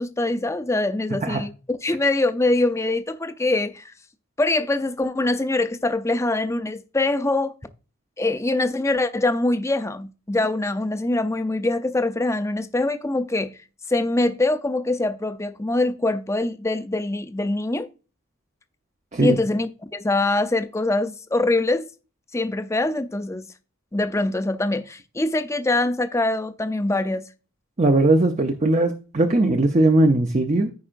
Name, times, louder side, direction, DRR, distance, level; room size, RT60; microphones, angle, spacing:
voice 1, 0.0-3.9 4.4-7.5 8.2-13.6 13.9-17.9 19.2-21.9 22.3-23.5 23.9-27.3, left 2 dB, 15° left, 0.5 m, -23 dB
voice 2, 27.8-30.7, right 2 dB, 35° right, 0.6 m, -19 dB
14.5 x 4.9 x 2.5 m
head